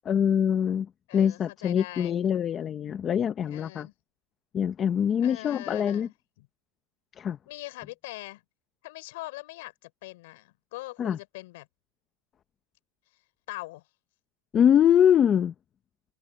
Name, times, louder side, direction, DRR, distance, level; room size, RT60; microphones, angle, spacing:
voice 1, 0.1-0.9 1.1-3.9 4.5-6.1 7.2-7.4 11.0-11.2 14.5-15.5, left 9 dB, 25° left, 0.8 m, -23 dB
voice 2, 1.1-2.1 3.4-3.9 5.2-6.5 7.5-8.4 8.8-11.7 13.5-13.8, left 20 dB, 65° left, 4.3 m, -42 dB
supercardioid pair, 160°, 0 cm